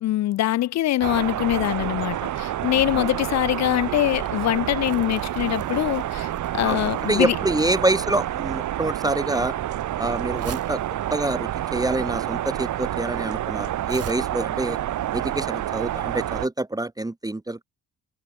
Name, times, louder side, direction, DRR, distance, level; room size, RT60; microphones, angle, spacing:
voice 1, 0.0-7.4, left 14 dB, 60° left, 0.5 m, -23 dB
sound 1, 1.0-16.5, right 12 dB, 75° right, 2.6 m, -28 dB
Crumpling crinkling, 4.8-14.1, right 8 dB, 55° right, 5.4 m, -44 dB
voice 2, 7.1-9.5 10.0-10.8 11.1-14.8 15.1-17.6, right 2 dB, 10° right, 1.5 m, -26 dB
cardioid pair, 90°, 30 cm